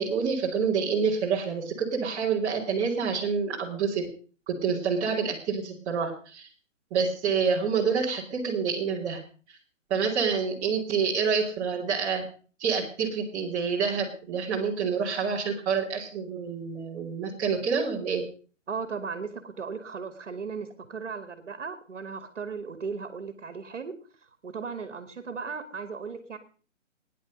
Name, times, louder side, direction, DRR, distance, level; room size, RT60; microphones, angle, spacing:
voice 1, 0.0-4.1 4.5-6.5 6.9-9.2 9.9-12.2 12.6-18.2, right 5 dB, 20° right, -4 dB, 2.7 m, -27 dB
voice 2, 18.7-23.9 24.4-26.4, right 5 dB, 65° right, 10 dB, 2.1 m, -36 dB
18.0 x 10.5 x 5.2 m, 0.40 s
hypercardioid pair, 150°, 38 cm